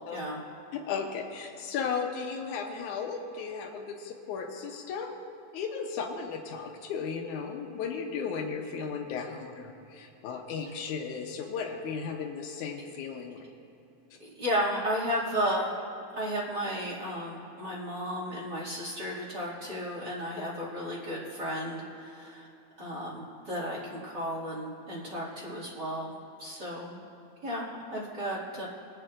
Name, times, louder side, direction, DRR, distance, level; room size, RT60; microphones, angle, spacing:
voice 1, 0.7-5.1 5.5-13.4, left 6 dB, 80° left, 2 dB, 2.3 m, -35 dB
voice 2, 14.3-15.7 16.1-22.5 22.8-26.1 26.4-27.0 27.4-28.7, equal, 35° right, -6 dB, 2.8 m, -33 dB
24.0 x 8.8 x 2.6 m, 2.9 s
omnidirectional pair, 3.5 m